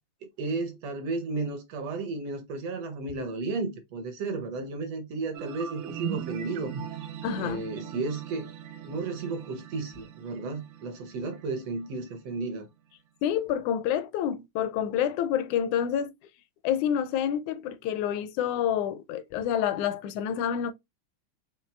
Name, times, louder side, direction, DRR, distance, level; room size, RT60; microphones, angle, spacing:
voice 1, 0.2-6.7 7.4-8.5 8.8-12.7, right 3 dB, 70° right, 1.6 m, -33 dB
sound 1, 5.3-12.4, right 9 dB, 85° right, 1.2 m, -40 dB
voice 2, 7.2-7.6 13.2-16.1 16.6-20.7, left 9 dB, 80° left, 1.9 m, -28 dB
5.8 x 2.7 x 3.2 m
omnidirectional pair, 3.4 m